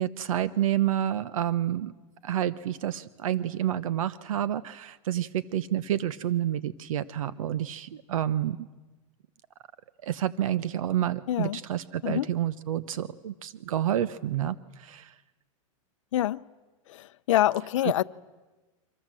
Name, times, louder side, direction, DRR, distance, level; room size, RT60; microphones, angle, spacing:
voice 1, 0.0-1.9 2.2-8.6 10.0-15.1, right 11 dB, 80° right, 1.0 m, -29 dB
voice 2, 11.3-11.6 12.0-12.3 16.1-16.4 16.9-18.0, left 14 dB, 65° left, 0.8 m, -25 dB
29.0 x 25.5 x 7.7 m
supercardioid pair, 170°, 17 cm